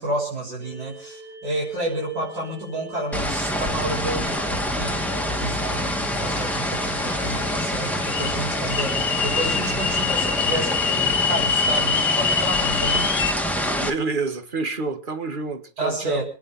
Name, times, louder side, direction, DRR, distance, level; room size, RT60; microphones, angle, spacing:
voice 1, 0.0-13.1 15.8-16.2, right 1 dB, 60° right, 7.1 m, -30 dB
sound 1, 0.6-11.5, right 3 dB, 80° right, 2.6 m, -42 dB
sound 2, 3.1-13.9, equal, ahead, 1.8 m, -26 dB
sound 3, 5.2-13.3, left 6 dB, 55° left, 1.5 m, -26 dB
voice 2, 13.8-16.2, right 4 dB, 30° right, 1.7 m, -28 dB
28.5 x 10.0 x 4.2 m
omnidirectional pair, 2.0 m